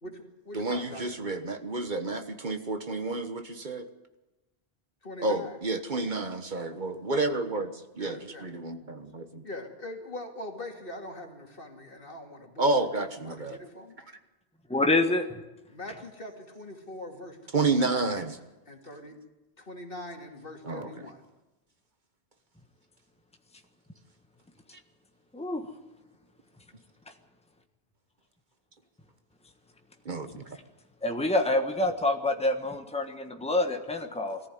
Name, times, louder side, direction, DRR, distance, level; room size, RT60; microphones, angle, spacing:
voice 1, 0.0-1.2 5.0-5.6 7.9-8.5 9.4-14.1 15.7-18.2 18.7-19.2 19.6-21.2, left 1 dB, 60° left, 3 dB, 2.8 m, -43 dB
voice 2, 0.5-3.9 5.2-9.4 12.6-13.6 17.5-18.4 20.6-20.9 30.0-30.6, right 3 dB, 50° right, 8 dB, 1.4 m, -30 dB
voice 3, 14.7-15.4 25.3-25.7 31.0-34.4, left 2 dB, 5° left, 6 dB, 1.3 m, -27 dB
21.0 x 14.5 x 9.3 m, 1.0 s
omnidirectional pair, 1.1 m